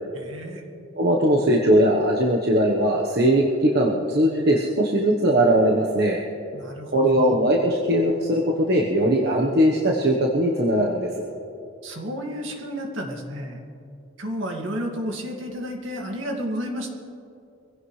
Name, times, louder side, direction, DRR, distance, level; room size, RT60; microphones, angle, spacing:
voice 1, 0.1-0.6 6.5-7.3 11.8-13.6 14.2-16.9, equal, 70° right, 1 dB, 2.1 m, -31 dB
voice 2, 0.9-6.2 6.9-11.3, right 1 dB, 50° right, -1 dB, 1.2 m, -20 dB
23.5 x 16.0 x 3.3 m, 2.6 s
head